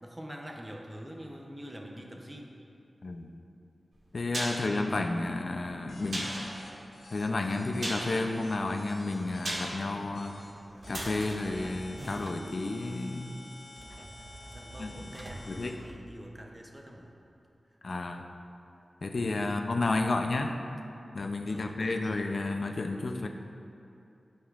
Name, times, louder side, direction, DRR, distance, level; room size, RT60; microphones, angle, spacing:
voice 1, 0.0-2.5 4.4-4.8 14.4-17.1 18.0-18.1 19.3-19.5 21.4-22.2, equal, 15° right, 0 dB, 0.8 m, -45 dB
sound 1, 3.9-12.8 13.1-13.2, right 1 dB, 70° right, 1.5 m, -40 dB
voice 2, 4.1-6.4 7.1-10.3 10.9-13.4 14.8-14.9 15.5-15.8 17.8-18.2 19.0-20.6 21.1-23.3, left 2 dB, 55° left, 4 dB, 0.5 m, -31 dB
sound 2, 5.9-9.7 10.1-10.5 10.8-15.7, left 2 dB, 85° left, 1.3 m, -51 dB
sound 3, 10.8-12.6 13.8-16.6, right 2 dB, 40° right, 0.3 m, -46 dB
13.0 x 5.2 x 2.5 m, 2.7 s
wide cardioid pair, 95°, 0 cm